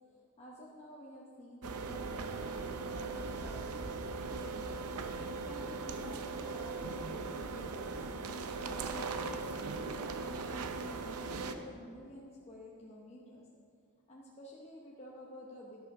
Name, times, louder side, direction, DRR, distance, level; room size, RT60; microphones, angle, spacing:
voice 1, 0.4-4.6 5.5-8.0 8.6-13.5 14.1-15.8, equal, 30° left, -4 dB, 1.0 m, -51 dB
sound 1, 1.6-11.5, right 4 dB, 85° right, 0.7 m, -39 dB
11.5 x 11.5 x 3.7 m, 2.3 s
head